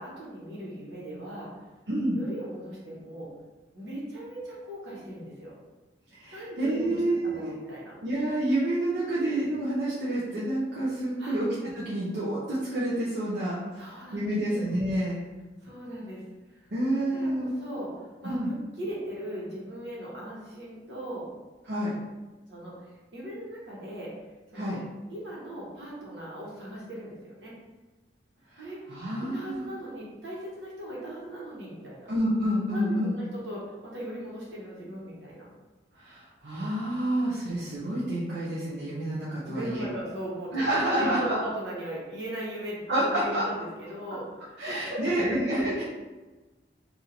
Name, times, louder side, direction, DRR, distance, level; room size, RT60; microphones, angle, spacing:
voice 1, 0.0-1.5 2.1-3.3 3.7-5.5 6.3-8.0 11.2-11.4 13.7-14.6 15.6-16.7 16.9-21.3 22.5-24.1 24.5-24.8 25.1-27.5 28.6-28.8 29.2-32.1 32.7-35.5 39.4-45.4, right 1 dB, 85° right, -6 dB, 1.3 m, -39 dB
voice 2, 6.1-7.5 8.0-11.5 11.7-15.2 16.7-17.5 18.2-18.5 21.7-21.9 24.5-24.8 28.5-28.6 28.9-29.7 32.1-33.2 36.0-39.9 40.5-41.4 42.9-43.4 44.6-45.8, right 1 dB, 70° right, -9 dB, 0.7 m, -28 dB
2.7 x 2.6 x 4.2 m, 1.2 s
head